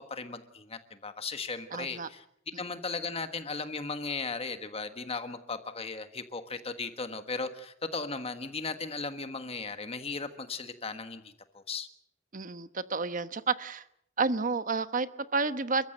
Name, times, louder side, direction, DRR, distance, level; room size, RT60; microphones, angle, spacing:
voice 1, 0.1-2.2 2.6-11.9, left 4 dB, 30° left, 8 dB, 1.4 m, -37 dB
voice 2, 1.7-2.1 12.3-13.8 14.2-15.9, right 4 dB, 40° right, 12 dB, 1.1 m, -30 dB
29.5 x 15.0 x 7.8 m, 0.72 s
head